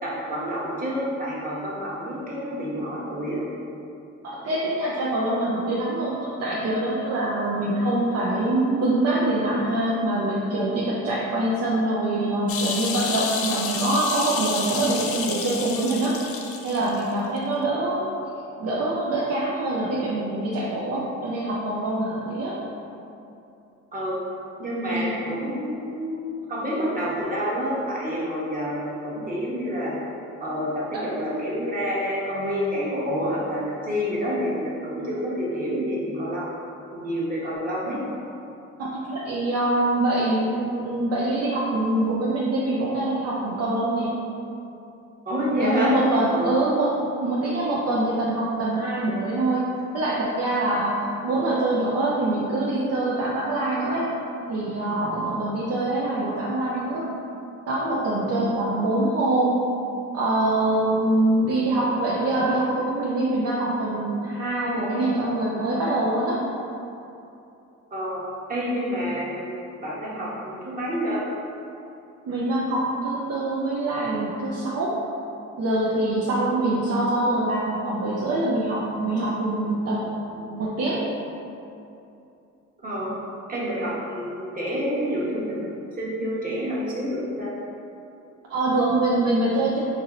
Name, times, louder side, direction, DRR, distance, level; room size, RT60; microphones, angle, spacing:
voice 1, 0.0-3.4 23.9-24.3 24.6-30.0 30.4-36.5 36.9-38.0 45.2-46.0 46.3-46.6 67.9-71.3 76.5-76.6 82.8-83.1 83.5-87.5, equal, 30° right, -7 dB, 1.2 m, -28 dB
voice 2, 4.2-16.2 16.6-18.1 18.6-22.6 24.9-25.1 38.8-44.1 45.6-49.7 49.9-51.0 51.2-54.1 54.5-57.1 57.7-59.6 60.1-66.4 72.3-75.0 75.6-81.1 88.5-89.8, right 2 dB, 55° right, -6 dB, 0.6 m, -24 dB
sound 1, 12.5-17.0 17.4-17.5, left 5 dB, 50° left, 0.4 m, -30 dB
4.7 x 2.8 x 2.5 m, 2.8 s
cardioid pair, 90°, 30 cm